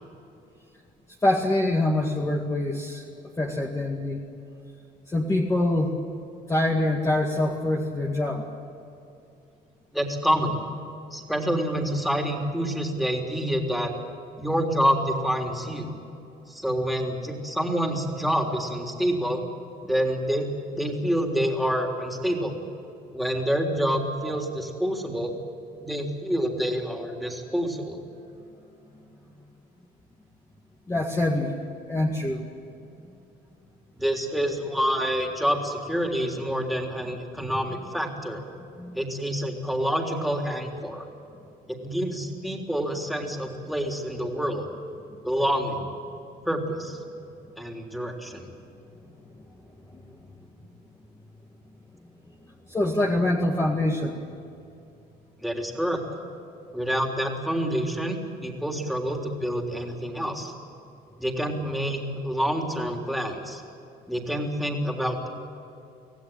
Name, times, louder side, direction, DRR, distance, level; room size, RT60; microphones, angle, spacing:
voice 1, 1.2-3.0 3.4-4.2 5.1-6.0 6.5-8.5 30.9-31.6 31.9-32.5 38.8-39.0 49.9-50.0 52.7-54.2, left 1 dB, 15° left, -1 dB, 2.1 m, -25 dB
voice 2, 9.9-10.6 11.1-13.9 14.4-15.9 16.5-19.4 19.8-22.6 23.1-25.3 25.8-28.0 33.9-38.4 38.9-41.1 41.7-44.7 45.2-45.9 46.4-47.0 47.6-48.5 55.4-56.0 56.7-60.5 61.2-63.6 64.1-65.3, equal, ahead, 1 dB, 3.5 m, -27 dB
25.5 x 16.5 x 9.2 m, 2.7 s
cardioid pair, 110°, 17 cm